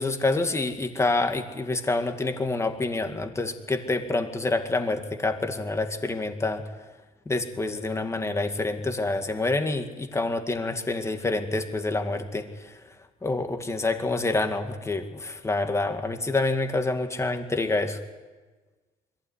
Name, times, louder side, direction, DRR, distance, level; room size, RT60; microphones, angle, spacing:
voice 1, 0.0-6.7 7.3-12.8 13.2-18.0, left 2 dB, 15° left, 6 dB, 2.1 m, -27 dB
22.0 x 15.5 x 9.7 m, 1.3 s
cardioid pair, 110°, 17 cm